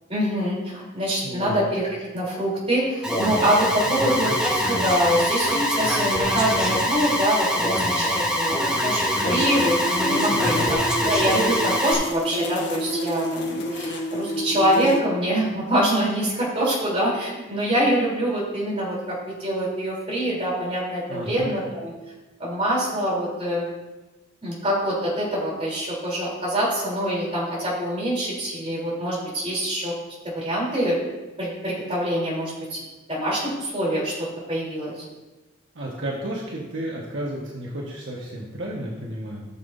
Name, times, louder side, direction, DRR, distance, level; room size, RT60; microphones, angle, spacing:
voice 1, 0.1-9.0 9.2-10.6 11.0-21.9 22.4-23.7 24.4-29.9 30.2-31.0 31.4-32.8 33.1-34.1 34.5-35.0, equal, 30° right, -5 dB, 3.3 m, -25 dB
voice 2, 1.2-1.6 3.8-4.4 10.3-10.7 21.1-21.5 35.7-39.5, right 1 dB, 70° right, -3 dB, 1.3 m, -32 dB
Alarm, 3.0-11.9, equal, 5° right, 1.1 m, -24 dB
sound 1, 9.2-15.0, equal, 55° left, 1.0 m, -29 dB
13.5 x 7.2 x 2.6 m, 1.1 s
head